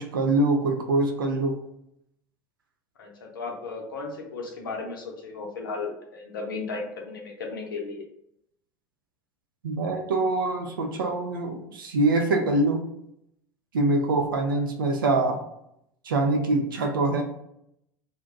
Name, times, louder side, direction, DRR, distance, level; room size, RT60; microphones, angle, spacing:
voice 1, 0.0-1.6 9.6-12.8 13.7-15.4 16.0-17.2, right 2 dB, 80° right, 3 dB, 0.4 m, -24 dB
voice 2, 3.0-8.0, left 4 dB, 75° left, 2 dB, 0.6 m, -35 dB
2.6 x 2.1 x 3.7 m, 0.77 s
figure-of-eight pair, 70°, 11 cm